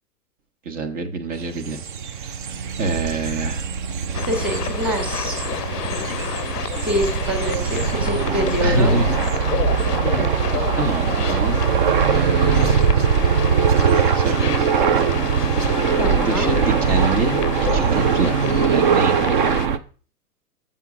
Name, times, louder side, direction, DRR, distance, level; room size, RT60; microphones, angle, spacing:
voice 1, 0.6-1.8 2.3-2.5 2.8-3.7 8.6-9.2 9.8-10.0 10.7-11.7 12.1-12.8 14.1-14.6 16.2-17.4 17.7-18.4 18.7-19.2, right 2 dB, 50° right, 6 dB, 1.3 m, -25 dB
sound 1, 1.4-19.8, right 7 dB, 35° right, 0.5 m, -21 dB
sound 2, 4.1-19.7, left 11 dB, 85° left, 0.6 m, -30 dB
voice 2, 4.2-5.4 6.8-9.0 16.0-16.5, equal, 5° right, 4 dB, 1.4 m, -25 dB
7.5 x 5.7 x 6.1 m, 0.40 s
hypercardioid pair, 125°, 46 cm